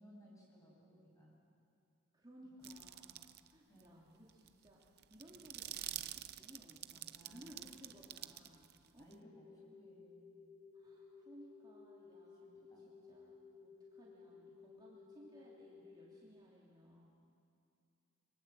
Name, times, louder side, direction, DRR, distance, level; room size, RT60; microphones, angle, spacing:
voice 1, 0.0-1.4 3.7-3.8 6.9-7.7 9.0-10.4 12.7-13.0, equal, 15° left, -4 dB, 7.4 m, -62 dB
voice 2, 2.1-4.8 5.1-9.1 10.7-17.1, equal, 20° right, -5 dB, 3.0 m, -60 dB
sound 1, 2.6-3.5 3.8-3.9 4.3-9.1, right 13 dB, 50° right, 0.6 m, -48 dB
sound 2, 9.1-16.2, left 5 dB, 45° left, 4.7 m, -58 dB
27.0 x 24.0 x 7.8 m, 2.5 s
head